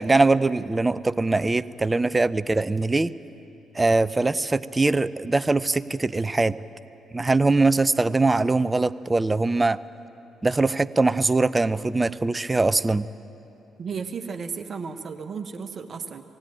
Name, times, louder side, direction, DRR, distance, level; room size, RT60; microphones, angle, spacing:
voice 1, 0.0-3.1 3.7-6.6 7.1-9.8 10.4-13.1, right 3 dB, 25° right, 15 dB, 0.6 m, -22 dB
voice 2, 13.8-16.2, right 5 dB, 50° right, 7 dB, 1.3 m, -34 dB
19.0 x 16.5 x 8.9 m, 2.9 s
hypercardioid pair, 45°, 0 cm